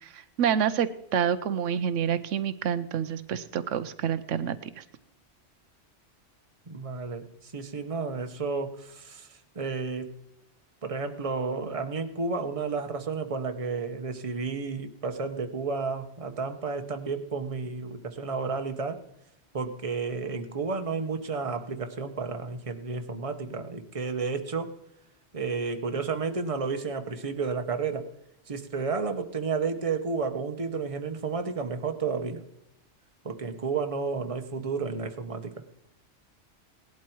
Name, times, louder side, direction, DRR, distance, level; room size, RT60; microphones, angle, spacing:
voice 1, 0.0-4.8, right 8 dB, 85° right, 12 dB, 1.0 m, -28 dB
voice 2, 6.7-10.1 10.8-19.0 19.5-24.7 25.3-28.1 28.5-32.4 33.2-35.6, right 4 dB, 30° right, 7 dB, 1.1 m, -32 dB
18.0 x 11.5 x 4.6 m, 0.83 s
omnidirectional pair, 1.2 m